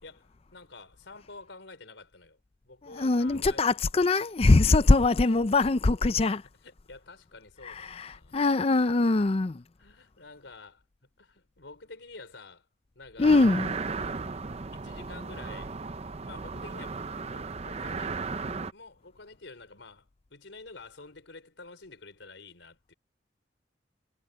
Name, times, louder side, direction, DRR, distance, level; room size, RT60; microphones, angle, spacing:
voice 1, 0.0-2.4 2.6-3.6 4.6-4.8 6.6-8.4 9.8-10.8 11.2-12.7 12.9-13.4 14.7-15.8 16.2-17.0 17.3-18.2 18.7-22.9, left 3 dB, 90° left, 4.2 m, -49 dB
voice 2, 2.9-6.4 7.6-9.6 13.2-13.8, left 3 dB, 35° left, 0.5 m, -23 dB
sound 1, 13.2-18.7, right 4 dB, 35° right, 0.6 m, -35 dB
head